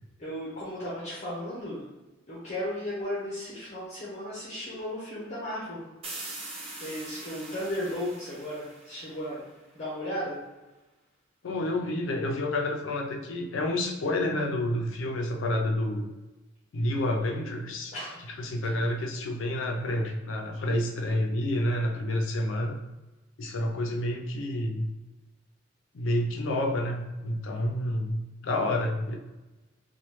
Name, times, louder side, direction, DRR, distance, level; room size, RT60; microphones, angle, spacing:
voice 1, 0.2-1.8 2.3-5.9 6.8-9.5 9.7-10.4 17.9-18.2 18.6-18.7, left 1 dB, 40° left, -8 dB, 0.7 m, -35 dB
sound 1, 6.0-9.6, right 2 dB, 30° right, 0.7 m, -42 dB
voice 2, 11.4-16.1 16.7-17.9 18.4-22.8 23.4-24.9 25.9-29.2, left 1 dB, 85° left, 2 dB, 0.5 m, -29 dB
3.0 x 2.2 x 3.0 m, 1.1 s
head